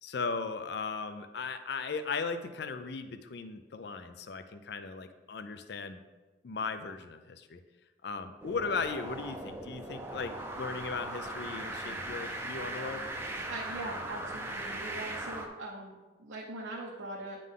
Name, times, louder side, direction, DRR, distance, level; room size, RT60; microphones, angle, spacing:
voice 1, 0.0-6.0 6.4-7.6 8.0-13.0, left 4 dB, 60° left, 9 dB, 0.4 m, -37 dB
sound 1, 8.4-15.5, right 1 dB, 15° right, 0.5 m, -39 dB
voice 2, 13.5-17.4, right 2 dB, 80° right, -2 dB, 0.8 m, -41 dB
9.5 x 3.8 x 3.6 m, 1.2 s
head